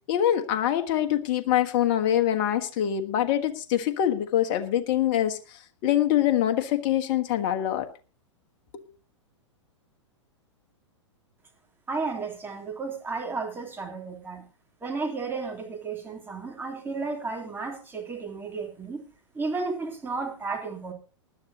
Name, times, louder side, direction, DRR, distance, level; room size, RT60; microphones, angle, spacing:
voice 1, 0.0-7.9 8.7-8.8, left 11 dB, 45° left, 7 dB, 1.4 m, -24 dB
voice 2, 11.9-14.4 14.8-19.0 19.3-20.9, right 4 dB, 15° right, 1 dB, 3.2 m, -33 dB
19.5 x 11.5 x 2.9 m, 0.35 s
figure-of-eight pair, 105°, 16 cm